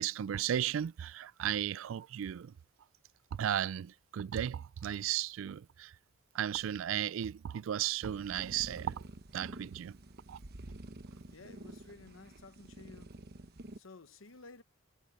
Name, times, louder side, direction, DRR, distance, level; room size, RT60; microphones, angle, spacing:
voice 1, 0.0-2.5 3.3-5.9 6.3-9.0 9.3-10.0 10.3-10.4, right 10 dB, 70° right, 0.3 m, -35 dB
sound 1, 8.0-13.8, right 1 dB, 50° right, 1.0 m, -49 dB
voice 2, 11.3-13.1 13.8-14.6, left 3 dB, 75° left, 1.0 m, -54 dB
head